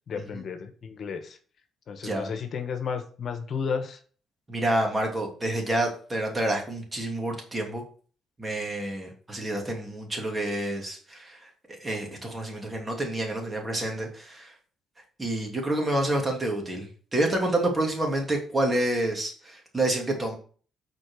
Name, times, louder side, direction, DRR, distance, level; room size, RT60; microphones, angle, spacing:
voice 1, 0.1-1.4 1.9-4.0, left 6 dB, 55° left, 7 dB, 1.3 m, -33 dB
voice 2, 4.5-7.8 8.4-14.5 15.2-20.4, right 1 dB, 25° right, 1 dB, 2.6 m, -28 dB
6.3 x 4.6 x 6.4 m, 0.43 s
cardioid pair, 90°, 0 cm